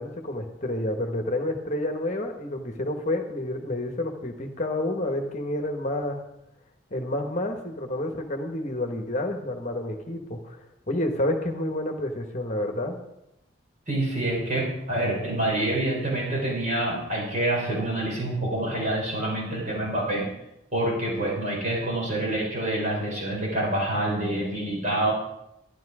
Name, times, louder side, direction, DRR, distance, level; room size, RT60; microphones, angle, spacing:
voice 1, 0.0-6.2 6.9-10.6 10.9-13.0, left 1 dB, 35° left, 4 dB, 1.3 m, -29 dB
voice 2, 13.9-20.3 20.7-25.1, right 1 dB, 40° right, -3 dB, 4.4 m, -27 dB
12.5 x 11.0 x 4.9 m, 0.86 s
head